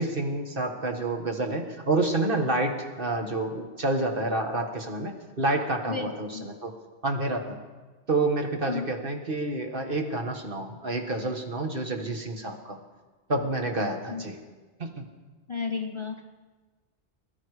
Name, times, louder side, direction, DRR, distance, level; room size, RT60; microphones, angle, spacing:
voice 1, 0.0-6.7 7.0-7.6 8.1-12.8 13.3-14.3 14.8-15.0, right 2 dB, 50° right, 3 dB, 1.7 m, -28 dB
voice 2, 5.9-6.5 8.6-8.9 14.1-14.2 15.5-16.2, left 5 dB, 30° left, 4 dB, 0.8 m, -33 dB
21.5 x 12.5 x 4.9 m, 1.3 s
omnidirectional pair, 1.2 m